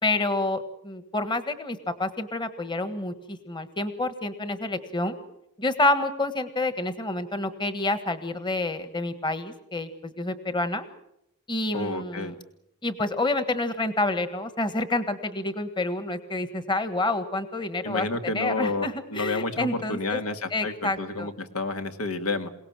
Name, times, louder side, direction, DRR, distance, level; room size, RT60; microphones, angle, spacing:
voice 1, 0.0-5.2 5.6-10.8 11.5-12.3 12.8-20.2 20.5-21.3, left 2 dB, 20° left, 10 dB, 1.5 m, -28 dB
voice 2, 11.7-12.4 17.8-22.5, left 3 dB, 80° left, 7 dB, 1.9 m, -30 dB
28.0 x 18.0 x 7.5 m, 0.80 s
head